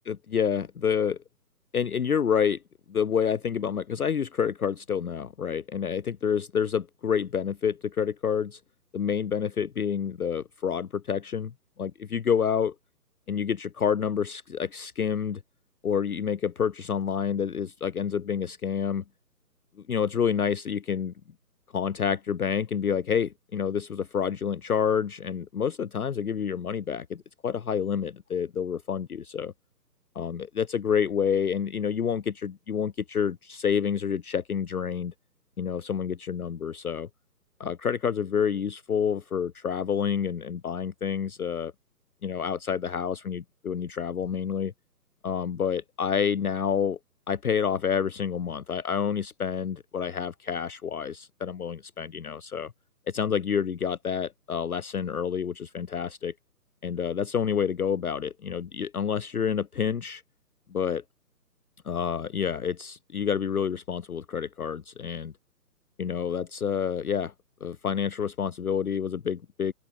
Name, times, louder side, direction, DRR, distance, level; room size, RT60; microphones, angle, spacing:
voice 1, 0.1-1.2 1.7-2.6 2.9-8.6 8.9-11.5 11.8-12.7 13.3-15.4 15.8-19.0 19.9-21.1 21.7-29.5 30.2-35.1 35.6-37.1 37.6-41.7 42.2-44.7 45.2-47.0 47.3-52.7 53.1-56.3 56.8-60.2 60.7-61.0 61.8-65.3 66.0-67.3 67.6-69.7, left 7 dB, 60° left, 0.7 m, -28 dB
open air
figure-of-eight pair, 145°, 49 cm